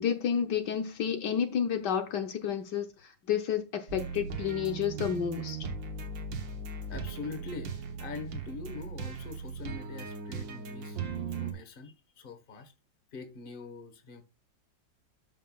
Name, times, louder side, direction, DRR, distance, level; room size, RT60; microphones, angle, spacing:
voice 1, 0.0-5.6, left 8 dB, 70° left, 1.5 m, -30 dB
sound 1, 3.9-11.5, right 5 dB, 75° right, 1.9 m, -38 dB
voice 2, 6.9-12.7 13.1-14.2, left 4 dB, 30° left, 1.3 m, -44 dB
11.5 x 5.7 x 2.3 m
omnidirectional pair, 2.0 m